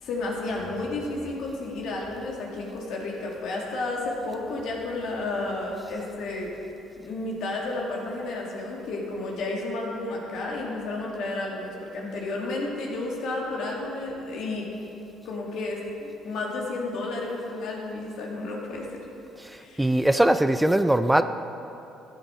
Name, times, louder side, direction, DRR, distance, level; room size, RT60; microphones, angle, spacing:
voice 1, 0.0-6.5 7.0-14.7 15.2-18.9 19.5-19.9, left 2 dB, 70° left, -2 dB, 2.3 m, -32 dB
voice 2, 19.4-21.2, right 1 dB, 5° right, 10 dB, 0.4 m, -21 dB
14.0 x 8.1 x 4.4 m, 2.8 s
supercardioid pair, 85°, 0 cm